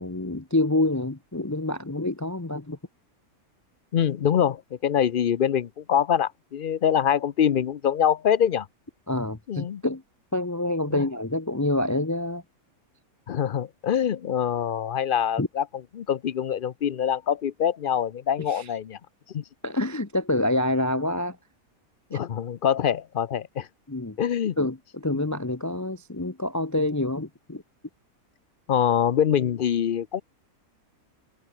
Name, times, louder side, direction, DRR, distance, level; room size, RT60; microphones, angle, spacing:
voice 1, 0.0-2.8 9.1-10.0 10.3-12.4 15.4-15.5 18.5-18.7 19.6-21.4 22.1-22.2 23.9-24.2 24.6-27.6, left 1 dB, 15° left, 0.9 m, -27 dB
voice 2, 3.9-8.7 9.5-9.8 10.9-11.1 13.3-15.6 16.0-19.0 19.3-19.4 22.1-23.7 24.2-24.6 28.7-30.2, left 9 dB, 55° left, 0.6 m, -24 dB
omnidirectional pair, 1.5 m